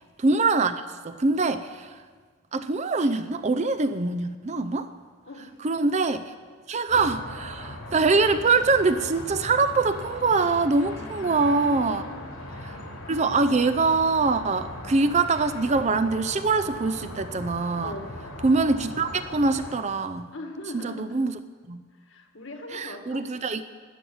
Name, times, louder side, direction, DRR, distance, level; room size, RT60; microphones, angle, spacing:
voice 1, 0.2-2.0 2.5-4.9 5.6-6.3 6.7-12.0 12.6-12.8 13.1-18.0 18.4-20.3 20.7-21.3 21.7-21.8 22.7-23.7, right 3 dB, 35° right, 10 dB, 0.5 m, -24 dB
voice 2, 5.3-5.6 10.9-12.2 17.8-18.1 20.3-21.3 21.9-23.2, left 2 dB, 60° left, 4 dB, 1.7 m, -40 dB
sound 1, 6.9-19.8, left 1 dB, 85° left, 3.1 m, -39 dB
13.0 x 7.1 x 9.5 m, 1.5 s
head